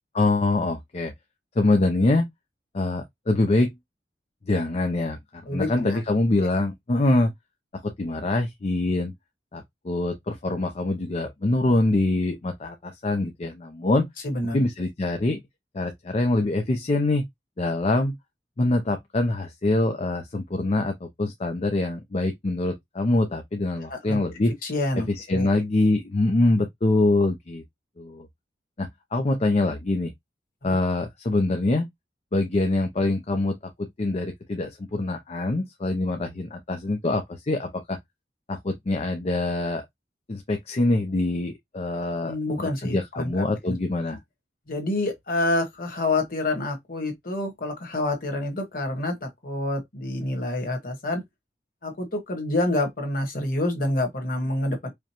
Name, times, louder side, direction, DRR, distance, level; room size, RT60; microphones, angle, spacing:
voice 1, 0.1-1.1 1.6-2.3 2.7-3.7 4.5-7.3 7.8-9.1 9.5-14.1 14.5-15.4 15.7-17.3 17.6-18.1 18.6-24.5 25.0-27.6 28.0-28.3 28.8-30.1 30.6-31.9 32.3-38.0 38.5-39.8 40.3-42.3 42.8-44.2, left 2 dB, 35° left, 0.5 m, -24 dB
voice 2, 5.5-6.0 14.2-14.6 23.9-24.2 24.6-25.5 30.6-30.7 42.2-43.3 43.7-43.8 44.7-51.2 51.8-54.9, left 2 dB, 55° left, 1.4 m, -27 dB
5.0 x 2.2 x 2.9 m
head